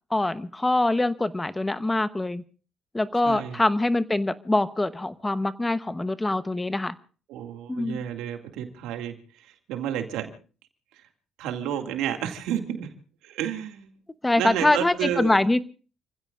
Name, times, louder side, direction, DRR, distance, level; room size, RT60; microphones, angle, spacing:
voice 1, 0.1-2.4 2.9-6.9 7.7-8.0 14.2-15.6, left 2 dB, 15° left, 13 dB, 0.9 m, -24 dB
voice 2, 3.2-3.6 7.3-10.3 11.4-12.9 13.2-13.9 14.3-15.4, right 10 dB, 80° right, 5 dB, 2.2 m, -31 dB
30.0 x 16.0 x 2.5 m, 0.37 s
supercardioid pair, 65°, 0 cm